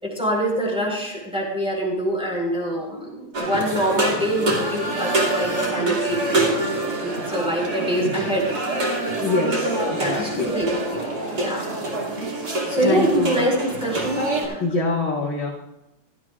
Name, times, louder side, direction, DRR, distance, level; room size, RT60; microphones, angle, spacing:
voice 1, 0.0-6.6 7.0-8.5 9.7-11.0 11.3-11.6 12.7-14.6, right 1 dB, 5° right, -2 dB, 4.3 m, -25 dB
sound 1, 3.3-14.5, right 2 dB, 70° right, 3.1 m, -26 dB
voice 2, 9.2-10.6 12.8-13.4 14.6-15.5, left 3 dB, 50° left, -10 dB, 3.4 m, -24 dB
17.0 x 13.5 x 2.5 m, 0.97 s
omnidirectional pair, 1.7 m